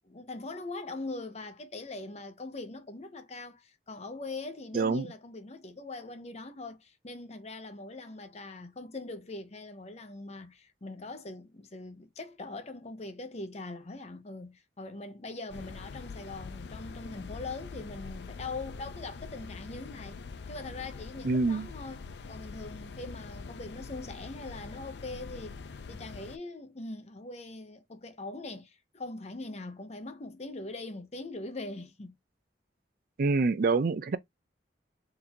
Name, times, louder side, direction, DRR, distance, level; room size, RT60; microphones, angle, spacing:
voice 1, 0.0-20.2 20.5-25.6 25.9-32.2, left 2 dB, 40° left, 0.8 m, -42 dB
voice 2, 4.7-5.1 21.2-21.7 33.2-34.2, right 3 dB, 55° right, 0.4 m, -26 dB
sound 1, 15.5-26.4, left 4 dB, 75° left, 0.5 m, -44 dB
3.9 x 2.6 x 4.4 m
head